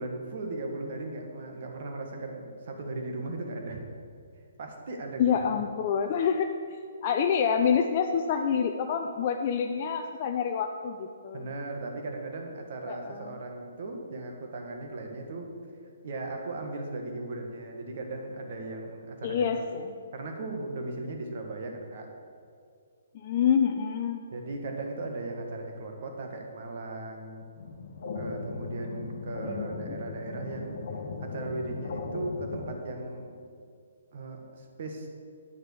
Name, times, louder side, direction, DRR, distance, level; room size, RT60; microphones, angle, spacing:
voice 1, 0.0-3.8 4.6-5.4 11.3-15.5 16.0-19.6 20.1-22.1 24.3-27.4 28.1-30.8 31.2-33.3 34.1-35.1, right 2 dB, 50° right, 2 dB, 1.7 m, -37 dB
voice 2, 5.2-6.5 7.0-11.5 12.9-13.4 19.2-20.0 23.1-24.2 29.4-30.0, left 7 dB, 40° left, 4 dB, 0.5 m, -27 dB
sound 1, 27.6-32.8, left 4 dB, 55° left, 1.0 m, -37 dB
9.6 x 6.5 x 6.7 m, 2.3 s
figure-of-eight pair, 130°, 0 cm